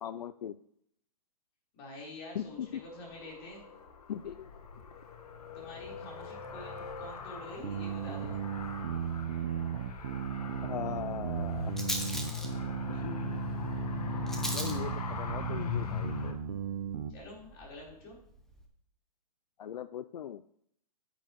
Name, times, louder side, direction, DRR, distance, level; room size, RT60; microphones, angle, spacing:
voice 1, 0.0-0.6 2.3-2.8 4.1-4.6 10.7-11.7 12.9-13.4 14.4-16.4 19.6-20.4, left 9 dB, 85° left, 14 dB, 0.5 m, -40 dB
voice 2, 1.7-3.6 5.5-8.4 17.1-18.2, left 1 dB, 35° left, -3 dB, 4.2 m, -47 dB
Car, 2.4-16.3, left 7 dB, 70° left, 1.5 m, -40 dB
sound 1, 7.6-17.1, right 9 dB, 60° right, 0.8 m, -36 dB
Rattle, 8.7-18.7, equal, ahead, 0.7 m, -44 dB
10.0 x 8.8 x 3.1 m, 0.68 s
hypercardioid pair, 155°, 20 cm